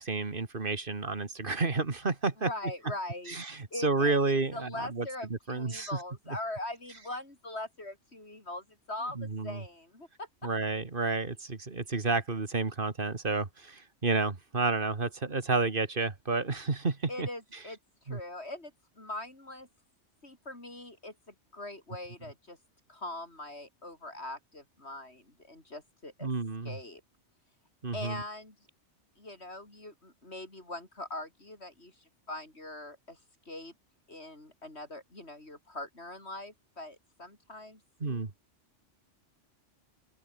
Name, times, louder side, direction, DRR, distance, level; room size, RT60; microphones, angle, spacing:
voice 1, 0.0-2.5 3.3-5.1 5.5-5.9 9.2-9.6 10.4-17.3 18.1-18.2 26.2-26.8 27.8-28.2 38.0-38.3, right 3 dB, 45° right, 2.1 m, -30 dB
voice 2, 2.4-3.4 3.7-10.3 17.1-17.8 18.0-19.7 20.2-22.6 22.9-26.3 26.6-27.0 27.9-28.6 29.2-33.2 33.5-33.7 34.1-37.8, left 2 dB, 60° left, 6.3 m, -42 dB
open air
omnidirectional pair, 1.2 m